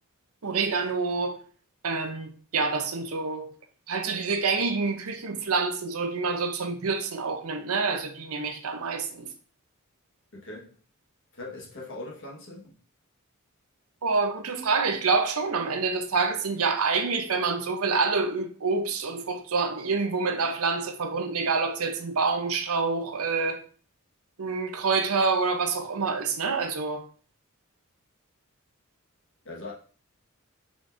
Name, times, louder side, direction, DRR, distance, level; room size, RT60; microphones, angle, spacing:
voice 1, 0.4-1.4 1.8-3.5 3.9-9.3 14.0-23.6 24.4-27.0, right 4 dB, 80° right, 0.7 m, -27 dB
voice 2, 10.3-10.8 11.3-12.8 29.4-29.7, left 2 dB, 60° left, 1.5 m, -40 dB
5.0 x 4.0 x 2.6 m
head